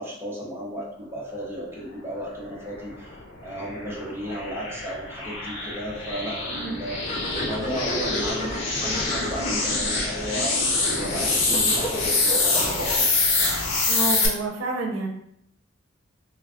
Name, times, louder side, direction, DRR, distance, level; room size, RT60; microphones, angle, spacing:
voice 1, 0.0-12.9, equal, 15° right, -5 dB, 0.8 m, -34 dB
sound 1, 2.7-14.3, left 3 dB, 70° left, 0.9 m, -26 dB
sound 2, 7.0-13.3, equal, 40° left, 0.7 m, -32 dB
voice 2, 13.9-15.1, right 2 dB, 75° right, 0 dB, 0.7 m, -29 dB
3.5 x 2.3 x 3.5 m, 0.71 s
head